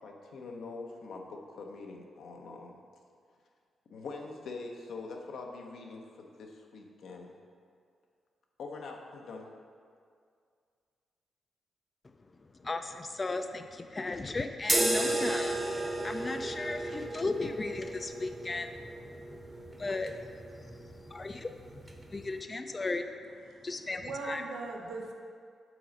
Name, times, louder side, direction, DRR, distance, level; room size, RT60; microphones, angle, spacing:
voice 1, 0.0-2.7 3.9-7.4 8.6-9.5, left 3 dB, 70° left, 1 dB, 0.7 m, -44 dB
voice 2, 12.6-18.8 19.8-20.1 21.1-21.8 22.1-23.0 23.6-24.4, left 3 dB, 35° left, 7 dB, 0.4 m, -36 dB
sound 1, 14.6-22.4, right 1 dB, 20° right, 0.9 m, -34 dB
voice 3, 23.4-25.1, right 3 dB, 75° right, 2 dB, 0.6 m, -40 dB
6.1 x 4.0 x 5.1 m, 2.2 s
supercardioid pair, 45°, 0 cm